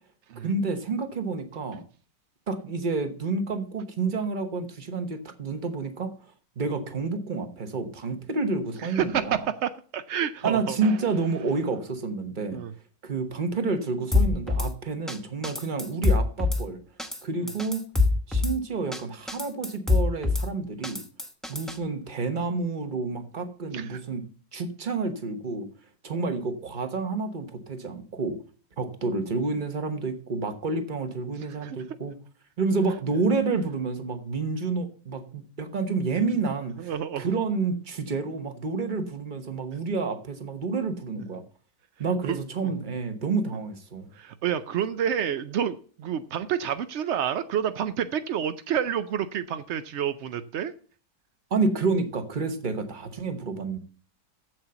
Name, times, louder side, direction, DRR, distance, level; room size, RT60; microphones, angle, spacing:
voice 1, 0.4-1.8 2.5-6.2 6.6-9.4 10.4-12.6 13.0-16.8 17.2-17.9 18.3-21.0 21.5-25.7 26.0-28.4 28.8-32.2 32.6-36.9 37.2-41.4 42.0-44.1 51.5-53.8, right 4 dB, 35° right, 8 dB, 1.1 m, -29 dB
voice 2, 8.8-11.0 12.5-12.7 23.7-24.0 31.5-31.8 36.8-37.3 42.3-42.7 44.1-50.7, right 9 dB, 80° right, 11 dB, 0.6 m, -29 dB
Drum kit / Snare drum, 14.1-14.7 15.1-15.2 15.4-16.6 17.0-17.2 17.5-18.5 18.9-19.0 19.3-20.5 20.8-21.8, left 3 dB, ahead, 0.6 m, -24 dB
7.7 x 7.6 x 6.9 m, 0.42 s
omnidirectional pair, 1.8 m